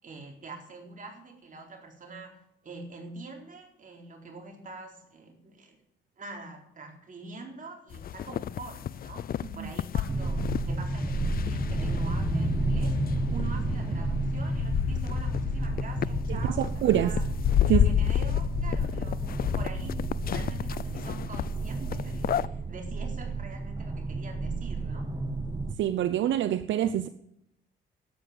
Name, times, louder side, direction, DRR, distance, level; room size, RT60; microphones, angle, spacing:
voice 1, 0.0-5.8 6.2-17.2 17.6-19.3 19.5-25.1, right 3 dB, 40° right, 4.0 m, -45 dB
sound 1, 7.9-22.5, left 10 dB, 50° left, 0.5 m, -31 dB
sound 2, 10.1-25.7, right 3 dB, 20° right, 1.0 m, -32 dB
voice 2, 16.3-17.1 17.7-17.8 25.8-27.1, right 11 dB, 70° right, 0.6 m, -26 dB
12.5 x 8.6 x 8.6 m
cardioid pair, 90°, 20 cm